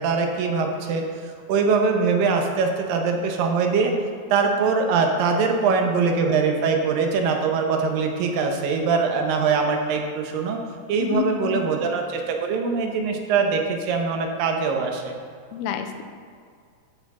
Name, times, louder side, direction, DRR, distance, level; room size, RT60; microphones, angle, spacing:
voice 1, 0.0-3.9 4.3-10.6 10.9-15.2, right 5 dB, 75° right, 3 dB, 2.4 m, -22 dB
voice 2, 11.0-11.6 15.5-16.0, left 8 dB, 85° left, 7 dB, 2.4 m, -28 dB
12.5 x 5.8 x 3.6 m, 2.1 s
omnidirectional pair, 4.3 m